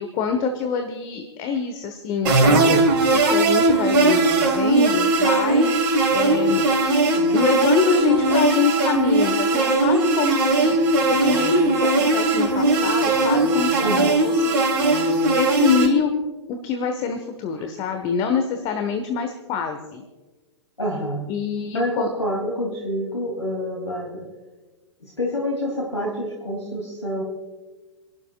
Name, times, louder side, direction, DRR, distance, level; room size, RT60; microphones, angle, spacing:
voice 1, 0.0-2.8 3.3-5.8 6.1-6.6 7.3-10.8 11.1-13.8 14.2-14.8 15.3-16.1 16.5-20.0 21.3-22.1, left 6 dB, 30° left, 6 dB, 1.3 m, -25 dB
sound 1, 2.2-15.9, right 2 dB, 45° right, 3.4 m, -19 dB
voice 2, 7.1-7.5 13.8-14.2 20.8-21.3 21.7-24.3 25.0-27.2, equal, 85° left, -1 dB, 2.9 m, -27 dB
28.5 x 12.0 x 2.4 m, 1.2 s
figure-of-eight pair, 110°, 15 cm